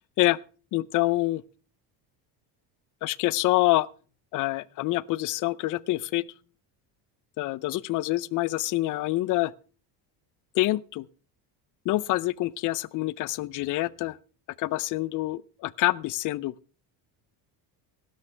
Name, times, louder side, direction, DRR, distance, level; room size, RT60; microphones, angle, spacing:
voice 1, 0.7-1.4 3.0-3.9 4.3-6.2 7.4-9.5 10.5-11.1 11.8-14.2 14.6-16.7, left 18 dB, 50° left, 0.5 m, -26 dB
16.5 x 12.5 x 3.3 m
cardioid pair, 150°, 42 cm